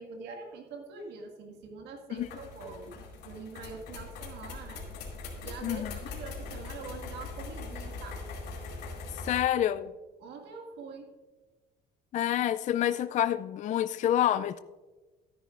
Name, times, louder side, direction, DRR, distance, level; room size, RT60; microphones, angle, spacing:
voice 1, 0.0-4.8 5.2-8.3 9.3-9.4 10.2-11.1, right 4 dB, 85° right, 2 dB, 1.7 m, -44 dB
sound 1, 2.2-9.4, left 3 dB, 80° left, 2.4 m, -41 dB
voice 2, 5.6-5.9 9.2-9.9 12.1-14.6, left 11 dB, 45° left, 13 dB, 0.4 m, -27 dB
13.5 x 10.0 x 2.5 m, 1.2 s
cardioid pair, 110°, 17 cm